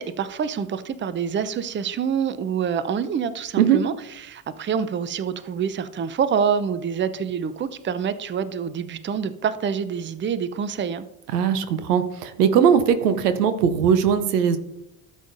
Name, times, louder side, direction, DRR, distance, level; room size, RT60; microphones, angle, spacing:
voice 1, 0.0-11.0, right 7 dB, 25° right, 0.6 m, -26 dB
voice 2, 11.3-14.6, right 8 dB, 90° right, 0.7 m, -19 dB
12.5 x 7.3 x 2.6 m
hypercardioid pair, 60°, 45 cm